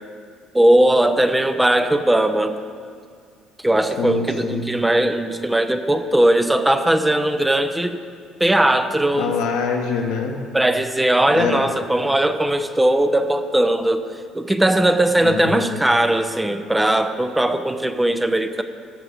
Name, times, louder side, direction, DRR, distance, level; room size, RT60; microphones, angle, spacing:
voice 1, 0.5-2.5 3.6-8.0 8.4-9.3 10.5-14.0 14.3-18.6, right 1 dB, 10° right, 8 dB, 0.8 m, -19 dB
voice 2, 4.0-4.6 9.1-10.4 11.3-11.7 15.2-15.7, left 5 dB, 85° left, 1 dB, 1.5 m, -24 dB
13.5 x 5.7 x 8.1 m, 2.2 s
supercardioid pair, 90°, 0 cm